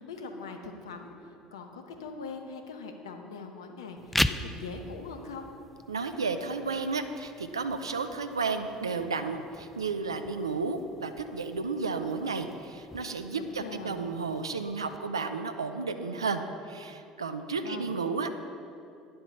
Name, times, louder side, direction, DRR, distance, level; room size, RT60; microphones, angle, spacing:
voice 1, 0.0-5.5 13.3-14.0 17.6-18.0, left 4 dB, 80° left, 5 dB, 1.0 m, -42 dB
sound 1, 4.0-15.0, left 1 dB, 5° left, 0.5 m, -39 dB
voice 2, 5.9-18.4, right 4 dB, 90° right, 8 dB, 0.5 m, -32 dB
10.0 x 7.8 x 5.5 m, 2.6 s
hypercardioid pair, 65°, 2 cm